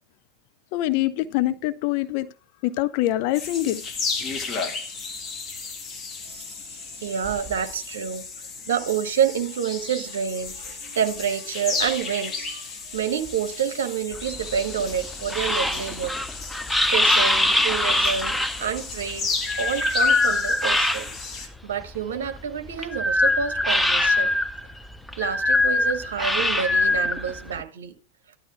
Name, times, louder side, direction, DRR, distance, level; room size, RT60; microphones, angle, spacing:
voice 1, 0.7-2.3 2.6-3.8, left 15 dB, 50° left, 0.6 m, -24 dB
sound 1, 3.3-21.5, left 4 dB, 25° left, 1.8 m, -34 dB
voice 2, 6.2-8.3 8.7-16.2 16.9-19.3 19.6-24.3 25.2-27.9, right 8 dB, 60° right, 1.1 m, -28 dB
sound 2, 14.1-21.4 21.8-27.6, left 2 dB, 5° left, 0.7 m, -23 dB
14.0 x 11.5 x 2.3 m
figure-of-eight pair, 90°, 0 cm